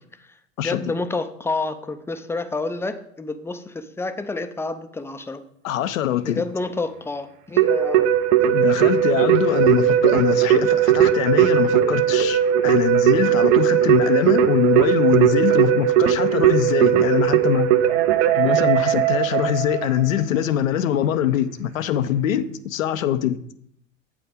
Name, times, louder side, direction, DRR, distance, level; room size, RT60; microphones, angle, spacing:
voice 1, 0.6-5.4 6.2-8.1, left 3 dB, 5° left, 0.4 m, -29 dB
voice 2, 5.6-6.4 8.5-17.7 18.4-23.4, left 10 dB, 80° left, 0.6 m, -23 dB
Keyboard (musical), 7.6-20.0, right 10 dB, 55° right, 0.7 m, -18 dB
8.1 x 4.9 x 5.0 m
hypercardioid pair, 85°, 40 cm